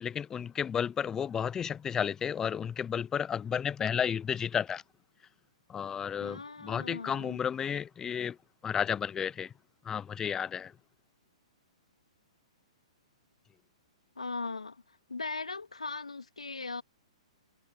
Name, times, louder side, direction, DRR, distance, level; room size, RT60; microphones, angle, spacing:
voice 1, 0.0-4.8 5.7-8.4 8.6-9.5 9.8-10.7, left 8 dB, 15° left, 0.6 m, -32 dB
voice 2, 6.2-7.4 14.2-14.8 15.1-16.8, left 3 dB, 85° left, 2.4 m, -39 dB
figure-of-eight pair, 120°, 3 cm